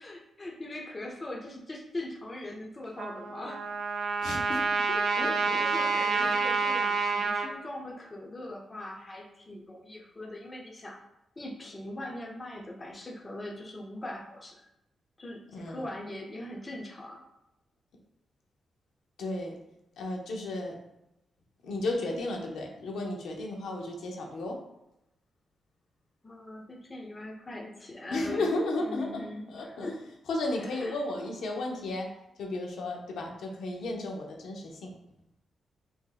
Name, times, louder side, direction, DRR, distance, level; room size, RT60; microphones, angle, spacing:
voice 1, 0.0-3.6 5.6-11.0 11.4-14.6 15.2-17.2 26.2-28.5 28.8-30.0 30.7-31.0, left 1 dB, 20° left, -1 dB, 0.4 m, -41 dB
Trumpet, 3.0-7.5, right 4 dB, 60° right, 0.5 m, -28 dB
voice 2, 4.2-5.6 6.2-6.3 15.5-15.8 19.2-19.5 20.0-20.8 21.6-24.6 28.1-30.0 30.3-32.1 32.4-34.9, left 2 dB, 85° left, 0 dB, 0.7 m, -34 dB
2.9 x 2.7 x 3.9 m, 0.85 s
wide cardioid pair, 170°, 0 cm